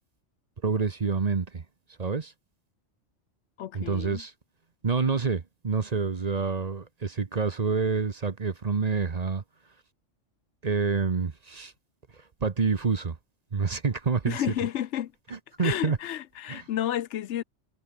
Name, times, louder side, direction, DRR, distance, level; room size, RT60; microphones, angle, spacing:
voice 1, 0.6-1.6 2.0-2.3 3.7-4.3 4.8-9.4 10.6-11.7 12.4-13.2 13.5-14.4 15.6-16.0 16.5-16.6, right 5 dB, 35° right, 0.9 m, -27 dB
voice 2, 3.6-4.2 14.3-15.1 15.6-17.4, left 11 dB, 75° left, 1.0 m, -31 dB
omnidirectional pair, 1.2 m